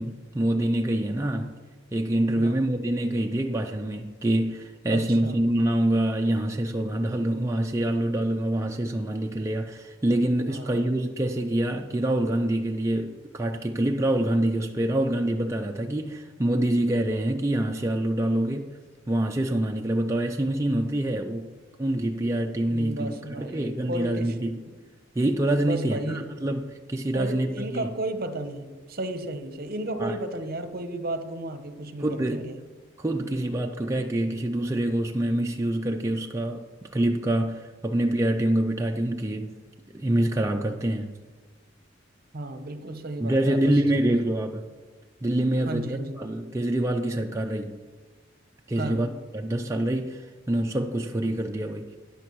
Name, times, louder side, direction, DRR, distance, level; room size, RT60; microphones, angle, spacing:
voice 1, 0.0-1.6 1.9-18.7 19.1-21.5 21.8-24.6 25.2-27.9 30.0-30.2 32.0-32.5 33.0-39.5 39.9-41.2 43.2-44.7 45.2-47.8 48.7-49.1 49.3-52.0, right 1 dB, 15° right, 2 dB, 0.4 m, -26 dB
voice 2, 4.9-5.4 10.5-10.9 22.7-24.3 24.7-24.8 25.6-26.3 27.1-32.6 42.3-43.8 45.7-46.2 48.8-49.1, right 1 dB, 50° right, 8 dB, 0.8 m, -33 dB
13.5 x 10.0 x 3.1 m, 1.4 s
head